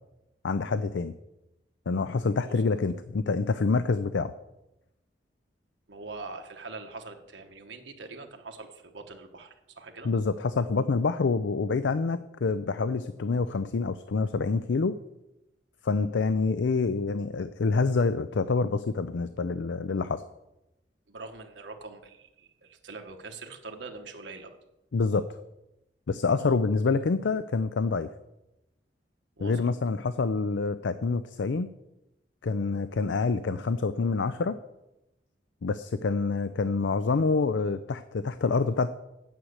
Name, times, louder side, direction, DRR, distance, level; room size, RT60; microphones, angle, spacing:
voice 1, 0.4-1.1 1.9-4.3 10.0-15.0 15.8-20.2 24.9-25.3 26.1-28.1 29.4-31.7 32.4-34.6 35.6-38.9, left 4 dB, 90° left, 12 dB, 0.5 m, -27 dB
voice 2, 5.9-10.1 21.1-24.6 26.4-26.6 29.4-29.6, right 3 dB, 90° right, 4 dB, 1.3 m, -43 dB
9.1 x 6.4 x 8.1 m, 0.91 s
head